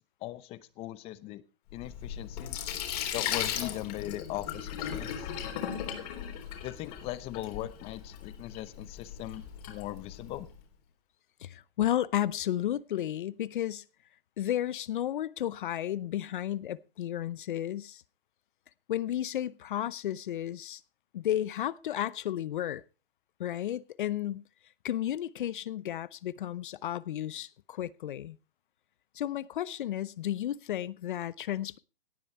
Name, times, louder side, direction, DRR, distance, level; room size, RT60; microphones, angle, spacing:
voice 1, 0.2-1.4 1.7-2.6 3.1-5.3 6.6-10.5, left 15 dB, 20° left, 0.8 m, -39 dB
Sink (filling or washing), 1.7-10.5, left 9 dB, 40° left, 3.5 m, -37 dB
voice 2, 11.4-13.8 14.4-18.0 18.9-20.8 21.1-22.8 23.4-24.4 24.8-28.4 29.1-31.8, left 12 dB, 60° left, 0.7 m, -33 dB
17.5 x 10.0 x 4.3 m
hypercardioid pair, 145°, 29 cm